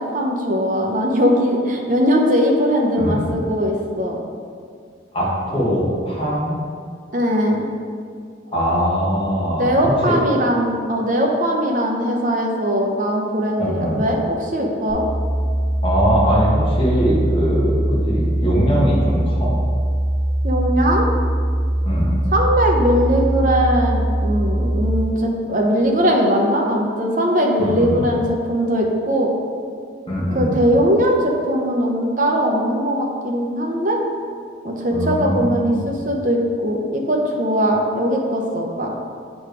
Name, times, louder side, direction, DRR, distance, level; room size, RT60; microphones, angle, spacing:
voice 1, 0.1-4.2 7.1-7.7 9.6-15.0 20.4-21.1 22.3-29.3 30.3-34.0 34.6-38.9, equal, 40° right, 0 dB, 0.8 m, -20 dB
voice 2, 5.1-6.6 8.5-10.2 13.6-14.0 15.8-19.5 21.8-22.2 27.6-28.0 30.1-30.5 34.9-35.9, equal, 30° left, -6 dB, 1.5 m, -21 dB
Low Frequency Humming Noise, 14.9-24.9, right 1 dB, 50° left, 1.2 m, -21 dB
7.6 x 3.2 x 4.6 m, 2.1 s
head